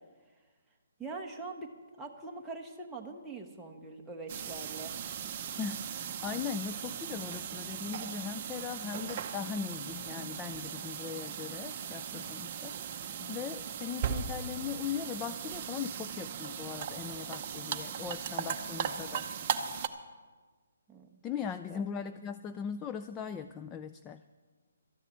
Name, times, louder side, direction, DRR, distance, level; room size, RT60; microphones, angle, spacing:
voice 1, 1.0-5.0 20.9-21.2 21.7-21.8, right 3 dB, 5° right, -2 dB, 1.1 m, -43 dB
sound 1, 4.3-19.9, right 8 dB, 30° right, 0.8 m, -38 dB
voice 2, 5.6-19.3 21.2-24.2, left 7 dB, 15° left, 9 dB, 0.3 m, -39 dB
13.0 x 7.2 x 9.5 m, 1.4 s
hypercardioid pair, 160°, 0 cm